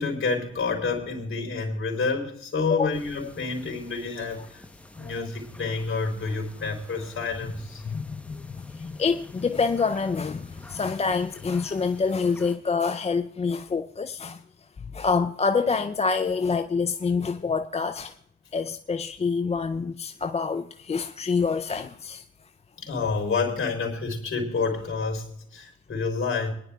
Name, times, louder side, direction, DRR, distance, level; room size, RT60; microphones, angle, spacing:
voice 1, 0.0-4.6 5.0-7.8 22.8-26.5, left 4 dB, 45° left, 3.9 m, -28 dB
sound 1, 2.9-12.6, left 2 dB, 5° left, 0.9 m, -47 dB
voice 2, 7.8-14.4 14.9-18.1 18.5-22.2, left 5 dB, 20° left, 0.5 m, -26 dB
26.5 x 10.5 x 2.3 m
cardioid pair, 90°, 30 cm